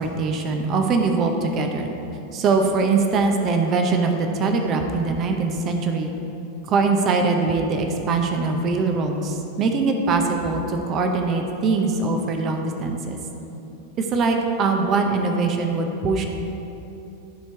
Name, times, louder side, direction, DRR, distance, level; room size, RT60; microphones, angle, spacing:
voice 1, 0.0-1.9 2.3-6.1 6.7-13.2 14.0-16.3, right 4 dB, 30° right, 4 dB, 0.8 m, -22 dB
12.5 x 4.5 x 4.6 m, 2.9 s
figure-of-eight pair, 90°, 0 cm